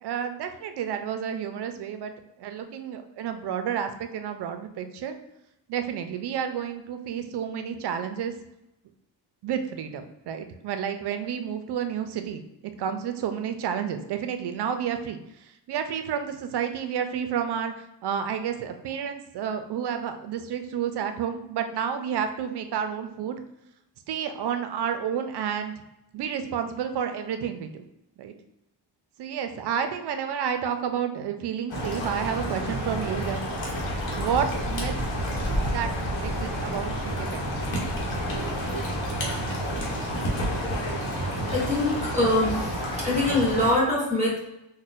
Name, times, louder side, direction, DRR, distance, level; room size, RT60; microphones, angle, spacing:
voice 1, 0.0-2.1 2.4-5.2 5.7-8.3 9.4-12.5 12.8-17.7 18.0-23.4 24.1-25.7 26.1-27.8 28.2-28.3 29.2-33.4 34.2-34.9 35.7-35.9 36.2-37.5, right 8 dB, 65° right, 8 dB, 0.5 m, -30 dB
sound 1, 31.7-43.7, equal, 85° left, 1.0 m, -29 dB
voice 2, 41.5-44.4, left 1 dB, 15° right, -6 dB, 1.2 m, -24 dB
4.0 x 2.2 x 2.4 m, 0.88 s
cardioid pair, 95°, 44 cm